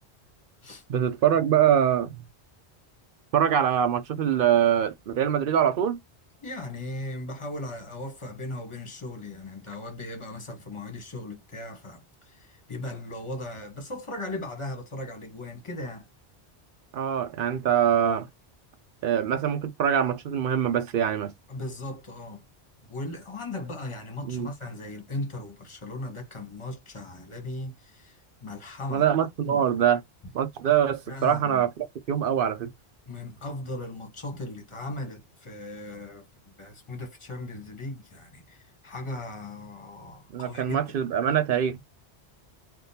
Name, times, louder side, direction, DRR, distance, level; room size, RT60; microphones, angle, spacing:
voice 1, 0.9-2.1 3.3-6.0 16.9-18.3 19.0-21.3 24.2-24.5 28.9-30.0 30.3-32.7 40.3-41.8, right 9 dB, 60° right, 0.7 m, -24 dB
voice 2, 6.4-16.1 21.5-22.4 22.9-29.1 29.4-29.6 31.1-31.6 33.1-36.3 36.6-40.8, left 2 dB, 30° left, 1.0 m, -37 dB
3.5 x 2.3 x 2.7 m
omnidirectional pair, 1.2 m